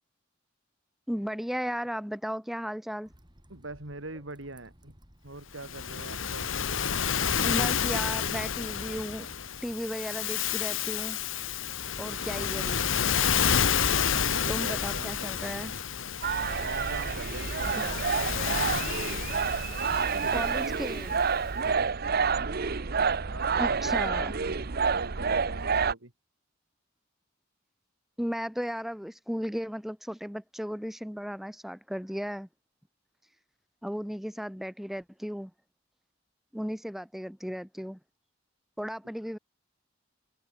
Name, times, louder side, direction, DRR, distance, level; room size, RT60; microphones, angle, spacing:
voice 1, 1.1-3.1 7.4-9.3 9.6-11.2 12.0-12.8 14.5-15.7 17.8-18.1 20.3-21.2 23.6-24.3 28.2-32.5 33.8-35.5 36.5-38.0 38.8-39.4, equal, ahead, 0.9 m, -35 dB
sound 1, 3.1-9.8, equal, 25° right, 7.0 m, -57 dB
voice 2, 3.5-4.9 5.2-6.5 13.7-15.8 16.6-18.4 19.9-20.8 21.6-22.1 23.3-26.1, right 2 dB, 80° right, 3.3 m, -43 dB
Waves surf, 5.6-21.1, left 7 dB, 85° left, 1.3 m, -30 dB
sound 2, 16.2-25.9, right 5 dB, 50° right, 0.9 m, -28 dB
head